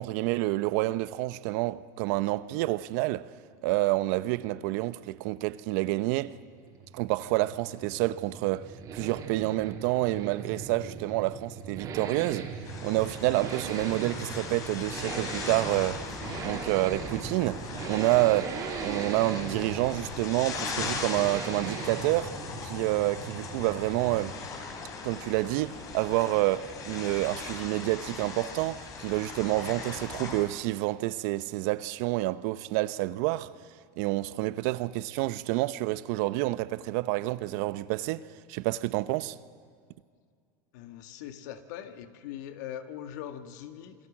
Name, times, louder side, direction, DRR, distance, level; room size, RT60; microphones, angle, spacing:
voice 1, 0.0-3.3 3.6-6.3 6.9-12.6 12.8-16.0 16.4-22.3 22.6-24.4 25.0-33.5 34.0-39.4, right 18 dB, 65° right, 0.8 m, -28 dB
Accelerating revving vroom, 6.4-24.4 24.7-24.8, right 5 dB, 40° right, 4.1 m, -40 dB
sound 1, 12.6-30.5, left 4 dB, 35° left, 4.3 m, -39 dB
voice 2, 40.7-44.0, left 10 dB, 75° left, 1.9 m, -41 dB
28.0 x 22.0 x 7.4 m
supercardioid pair, 135°, 10 cm